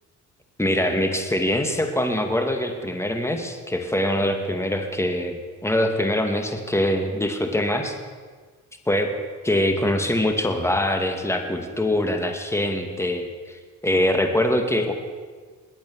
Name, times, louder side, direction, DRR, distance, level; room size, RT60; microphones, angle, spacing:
voice 1, 0.6-8.0 8.9-9.1 9.4-14.9, left 1 dB, 10° left, 5 dB, 2.3 m, -23 dB
21.0 x 9.0 x 7.2 m, 1.5 s
cardioid pair, 90°, 30 cm